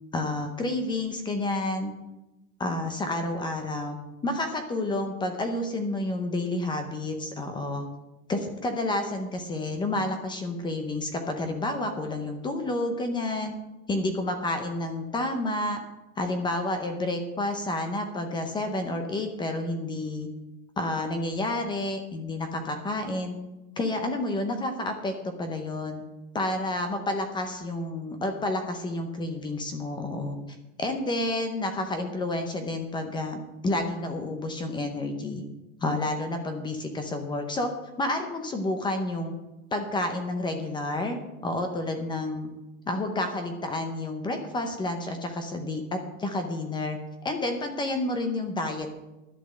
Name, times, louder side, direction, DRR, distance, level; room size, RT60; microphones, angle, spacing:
voice 1, 0.1-1.9 2.6-4.0 4.2-7.9 8.3-13.5 13.9-15.8 16.2-20.3 20.8-23.4 23.8-26.0 26.3-30.4 30.8-35.4 35.8-37.7 38.0-39.3 39.7-42.5 42.9-47.0 47.2-48.9, left 2 dB, 10° left, 6 dB, 0.7 m, -30 dB
11.5 x 8.2 x 6.4 m, 1.0 s
supercardioid pair, 155°, 44 cm